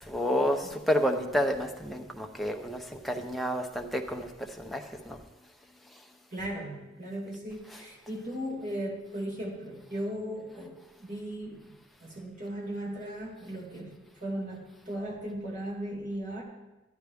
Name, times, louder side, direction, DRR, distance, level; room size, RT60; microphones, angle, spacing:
voice 1, 0.0-5.2 7.7-7.8, equal, ahead, 0.7 m, -30 dB
voice 2, 6.3-16.4, right 1 dB, 40° right, 2.4 m, -37 dB
11.5 x 10.5 x 3.5 m
head